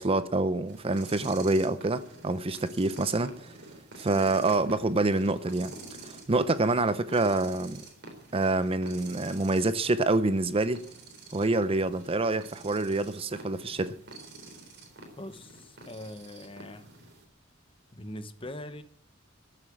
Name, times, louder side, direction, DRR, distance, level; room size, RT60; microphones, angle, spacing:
voice 1, 0.0-3.5 4.0-5.7 6.0-7.8 8.3-10.8 11.3-14.0, right 2 dB, 30° right, 0.6 m, -27 dB
sound 1, 0.7-17.2, right 2 dB, 55° right, 3.7 m, -48 dB
voice 2, 15.2-16.9 17.9-18.8, left 1 dB, 25° left, 1.0 m, -42 dB
14.0 x 7.5 x 8.6 m
head